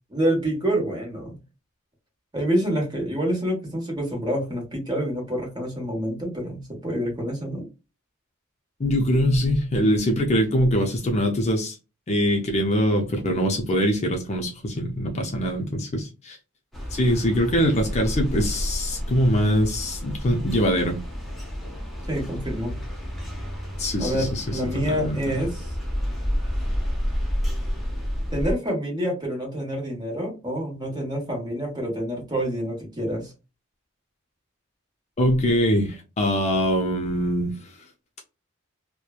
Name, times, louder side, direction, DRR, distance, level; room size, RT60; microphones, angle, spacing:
voice 1, 0.1-1.4 2.3-7.7 22.1-22.8 24.0-25.7 28.3-33.3, equal, 20° right, 1.2 m, -27 dB
voice 2, 8.8-11.7 12.1-16.4 16.9-21.0 23.8-24.6 24.9-25.2 35.2-37.5, equal, 35° left, 0.5 m, -23 dB
sound 1, 16.7-28.5, equal, ahead, 0.7 m, -30 dB
3.0 x 2.1 x 2.3 m
head